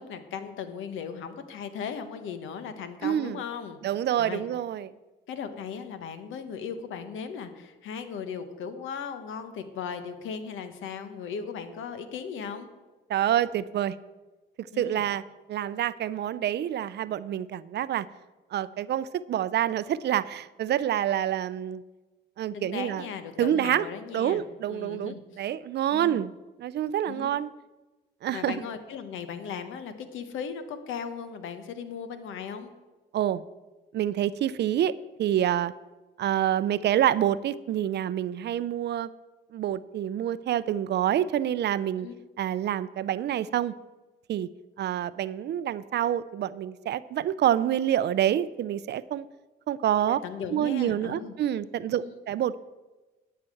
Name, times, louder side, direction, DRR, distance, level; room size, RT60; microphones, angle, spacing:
voice 1, 0.0-3.8 4.2-4.4 5.3-12.7 14.7-15.0 22.5-24.4 24.7-25.4 25.9-26.2 27.1-27.3 28.3-32.7 42.0-42.1 50.1-51.3 51.9-52.1, left 6 dB, 80° left, 10 dB, 1.1 m, -37 dB
voice 2, 3.0-3.4 3.8-4.9 13.1-14.0 14.6-15.2 15.5-18.1 18.5-21.8 22.4-23.0 23.4-23.9 24.1-26.3 26.6-27.5 28.2-28.6 33.1-33.4 33.9-35.7 36.2-39.1 39.5-42.1 42.4-43.7 44.3-44.5 44.8-49.3 49.7-50.2 50.5-52.6, right 11 dB, 60° right, 17 dB, 0.4 m, -27 dB
10.5 x 5.9 x 7.8 m, 1.2 s
cardioid pair, 90°, 20 cm